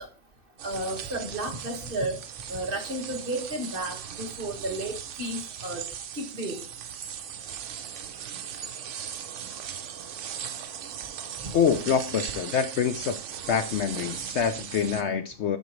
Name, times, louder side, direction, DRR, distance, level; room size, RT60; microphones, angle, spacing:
voice 1, 0.6-2.2 2.5-5.9 6.2-6.6, right 1 dB, 40° right, 4 dB, 1.7 m, -32 dB
sound 1, 0.6-15.0, right 8 dB, 65° right, 1.0 m, -38 dB
voice 2, 11.5-13.2 13.5-15.6, left 7 dB, 65° left, 9 dB, 0.8 m, -26 dB
12.5 x 4.6 x 3.1 m, 0.35 s
omnidirectional pair, 1.5 m